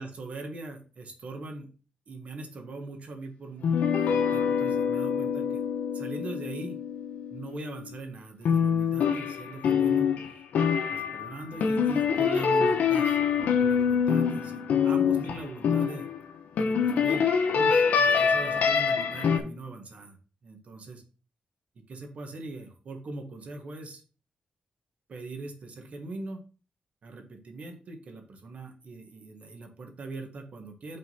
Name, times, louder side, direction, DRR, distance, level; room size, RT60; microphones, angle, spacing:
voice 1, 0.0-1.7 2.1-5.7 5.9-6.8 7.3-10.1 10.9-13.2 13.6-16.1 16.6-20.2 20.4-21.0 21.9-24.0 25.1-26.4 27.0-31.0, right 3 dB, 60° right, 4 dB, 1.5 m, -41 dB
sound 1, 3.6-8.0 8.4-16.2 16.6-19.4, left 6 dB, 90° left, 0.9 m, -25 dB
5.5 x 3.8 x 5.5 m, 0.36 s
cardioid pair, 105°, 3 cm